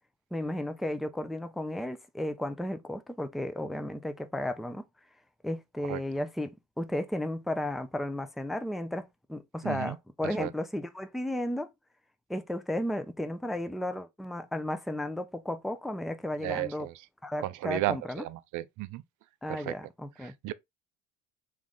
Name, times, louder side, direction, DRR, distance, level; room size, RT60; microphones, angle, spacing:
voice 1, 0.3-4.8 5.4-11.7 12.3-16.9 17.2-18.2 19.4-20.3, left 1 dB, ahead, 0.5 m, -34 dB
voice 2, 9.6-10.0 10.2-10.5 16.4-16.9 17.4-19.0 19.5-19.8 20.2-20.5, right 16 dB, 50° right, 0.5 m, -34 dB
3.5 x 3.3 x 3.8 m
hypercardioid pair, 75°, 38 cm